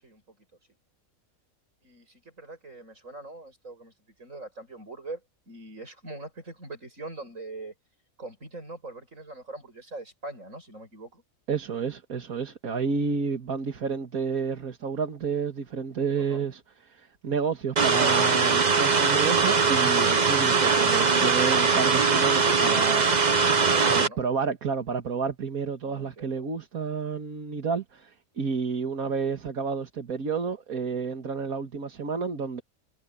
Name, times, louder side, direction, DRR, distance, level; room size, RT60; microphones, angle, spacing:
voice 1, 0.0-0.4 1.8-3.9 4.2-7.7 8.2-11.2 16.2-16.4 23.6-24.2 25.8-26.4, right 2 dB, 65° right, 8.6 m, -42 dB
voice 2, 11.5-23.4 23.8-32.6, right 5 dB, 85° right, 2.2 m, -30 dB
sound 1, 17.8-24.1, right 5 dB, 35° right, 1.1 m, -21 dB
omnidirectional pair, 1.5 m